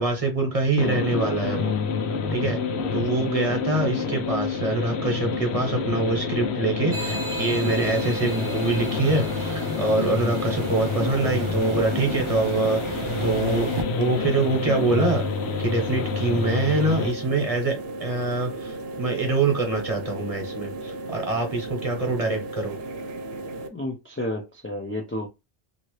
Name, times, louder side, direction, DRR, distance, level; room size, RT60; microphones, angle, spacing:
voice 1, 0.0-1.7 2.3-2.6 2.9-15.3 15.6-22.8, right 3 dB, 35° right, 1.0 m, -25 dB
sound 1, 0.8-17.1, left 5 dB, 90° left, 0.9 m, -28 dB
sound 2, 6.9-13.8, right 4 dB, 55° right, 0.3 m, -35 dB
sound 3, 10.5-23.7, right 2 dB, 75° right, 0.8 m, -36 dB
voice 2, 23.7-25.3, left 1 dB, 20° left, 0.3 m, -31 dB
2.8 x 2.7 x 3.0 m
omnidirectional pair, 1.1 m